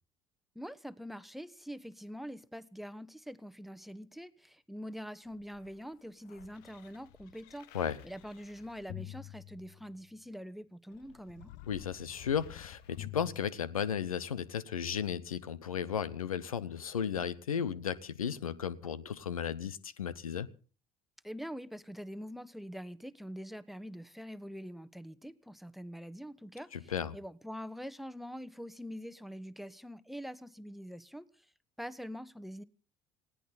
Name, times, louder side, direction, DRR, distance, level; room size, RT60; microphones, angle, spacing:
voice 1, 0.5-7.7 8.0-11.5 21.2-31.5 31.8-32.6, equal, ahead, 1.1 m, -44 dB
sound 1, 5.3-10.2 10.9-14.2 15.0-15.1, left 14 dB, 65° left, 1.1 m, -50 dB
voice 2, 11.7-20.5 26.7-27.2, left 8 dB, 85° left, 0.8 m, -35 dB
20.0 x 17.0 x 4.0 m
figure-of-eight pair, 55°, 17 cm